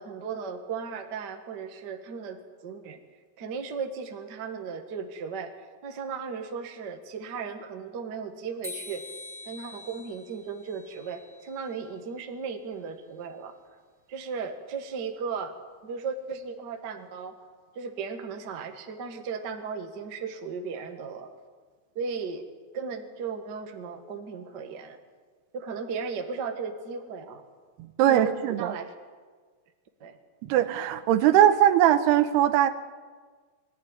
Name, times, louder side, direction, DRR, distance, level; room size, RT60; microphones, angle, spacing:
voice 1, 0.0-3.0 3.4-5.5 5.8-9.0 9.4-13.5 14.1-15.5 15.8-17.4 17.7-21.3 21.9-22.4 22.7-25.0 25.5-27.4 28.0-28.3 28.6-28.9 30.0-30.2, right 5 dB, 55° right, 4 dB, 1.2 m, -36 dB
sound 1, 8.6-11.7, left 3 dB, ahead, 1.7 m, -44 dB
voice 2, 27.8-28.7 30.4-32.7, right 11 dB, 85° right, 11 dB, 2.9 m, -21 dB
22.5 x 13.5 x 9.6 m, 1.5 s
omnidirectional pair, 4.5 m